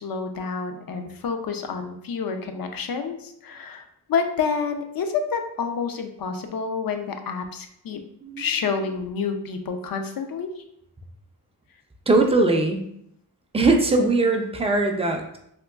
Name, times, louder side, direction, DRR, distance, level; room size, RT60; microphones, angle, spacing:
voice 1, 0.0-8.0 8.4-10.5, left 5 dB, 60° left, 6 dB, 0.5 m, -28 dB
voice 2, 12.1-12.8 13.5-15.4, right 3 dB, 15° right, 3 dB, 0.3 m, -20 dB
3.7 x 2.9 x 2.3 m, 0.74 s
wide cardioid pair, 130°, 39 cm